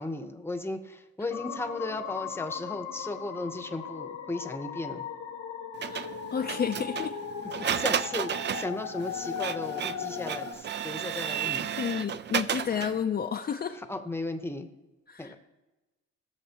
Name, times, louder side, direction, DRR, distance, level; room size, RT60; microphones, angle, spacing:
voice 1, 0.0-5.0 7.6-11.7 13.9-14.7 15.2-15.4, left 2 dB, 10° left, 7 dB, 0.9 m, -35 dB
sound 1, 1.3-10.5, left 8 dB, 75° left, 1.0 m, -38 dB
Printer, 5.8-13.0, right 8 dB, 40° right, 0.4 m, -33 dB
voice 2, 5.9-7.1 11.7-13.8 15.1-15.4, left 7 dB, 35° left, 4 dB, 0.5 m, -31 dB
17.0 x 6.6 x 2.9 m, 1.1 s
cardioid pair, 90°, 30 cm